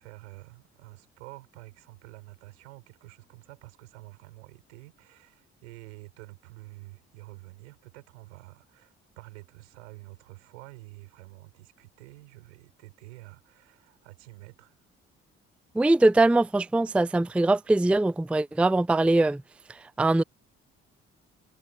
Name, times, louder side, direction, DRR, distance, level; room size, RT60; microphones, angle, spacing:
voice 1, 0.0-14.8, right 22 dB, 80° right, 7.1 m, -48 dB
voice 2, 15.7-19.4 20.0-20.2, right 2 dB, 5° right, 0.5 m, -22 dB
hypercardioid pair, 45°, 35 cm